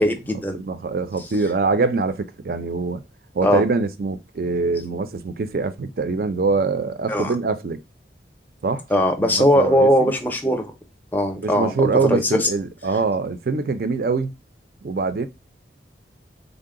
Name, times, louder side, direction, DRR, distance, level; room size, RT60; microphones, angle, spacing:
voice 1, 0.0-0.6 3.4-3.6 7.1-7.3 8.9-10.7 11.1-12.5, equal, 10° left, 0.5 m, -19 dB
voice 2, 0.5-3.0 3.3-7.8 8.6-8.8 9.2-10.1 11.4-14.3 14.8-15.3, right 4 dB, 55° right, 0.4 m, -24 dB
3.7 x 2.1 x 3.6 m
head